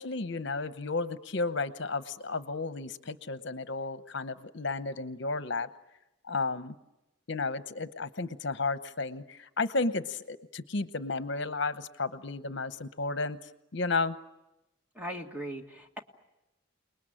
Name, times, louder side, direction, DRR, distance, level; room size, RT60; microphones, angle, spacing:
voice 1, 0.0-5.7 6.3-6.7 7.3-14.2, left 3 dB, 60° left, 11 dB, 0.9 m, -33 dB
voice 2, 15.0-16.0, equal, 10° right, 3 dB, 1.6 m, -39 dB
29.5 x 20.5 x 8.9 m, 0.96 s
head